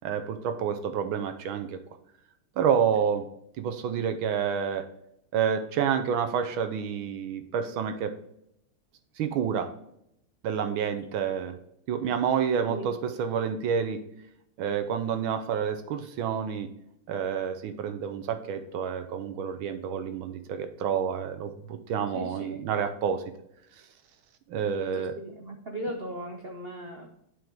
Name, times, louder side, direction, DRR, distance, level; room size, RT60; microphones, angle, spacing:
voice 1, 0.0-1.8 2.6-3.3 3.6-4.9 5.3-8.1 9.2-9.7 10.4-11.6 11.9-14.0 14.6-16.7 17.1-23.2 24.5-25.1, right 7 dB, 75° right, 9 dB, 1.5 m, -29 dB
voice 2, 12.6-12.9 22.1-22.6 25.0-27.1, right 1 dB, 90° right, 2 dB, 0.5 m, -37 dB
7.8 x 5.1 x 4.6 m, 0.75 s
omnidirectional pair, 2.4 m